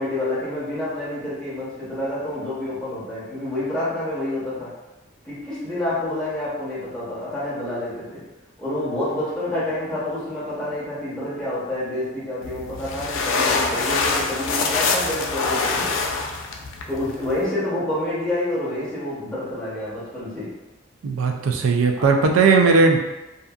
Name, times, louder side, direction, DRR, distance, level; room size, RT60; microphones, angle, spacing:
voice 1, 0.0-4.7 5.2-8.2 8.6-15.9 16.9-20.5, left 1 dB, 5° left, -10 dB, 0.7 m, -28 dB
sound 1, 12.4-17.4, left 4 dB, 70° left, 0.3 m, -24 dB
voice 2, 21.0-23.0, right 4 dB, 90° right, 3 dB, 0.4 m, -17 dB
2.6 x 2.4 x 2.3 m, 1.0 s
head